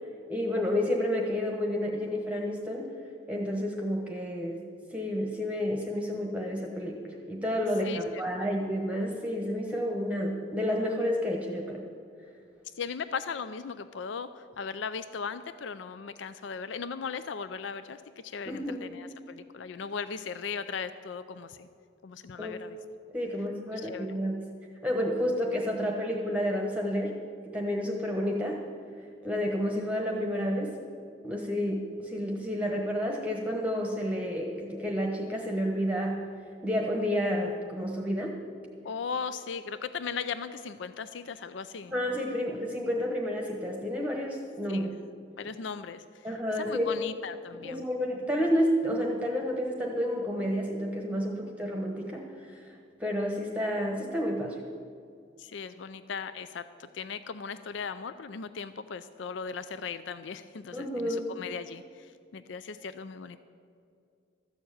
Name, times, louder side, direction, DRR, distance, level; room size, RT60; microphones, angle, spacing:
voice 1, 0.3-2.9 3.3-4.6 4.9-11.8 18.5-18.9 22.4-22.5 23.1-24.5 24.8-27.1 27.5-28.6 29.2-30.7 31.2-36.2 36.6-38.3 41.9-44.9 46.2-47.0 47.6-54.6 60.7-61.2, equal, 5° right, 0 dB, 1.1 m, -30 dB
voice 2, 7.8-8.5 12.8-21.7 22.0-22.8 23.7-24.2 38.8-41.9 44.7-44.9 45.4-46.3 46.5-47.8 55.4-56.7 56.9-63.4, left 6 dB, 75° left, 13 dB, 0.4 m, -38 dB
13.5 x 7.2 x 8.7 m, 2.4 s
head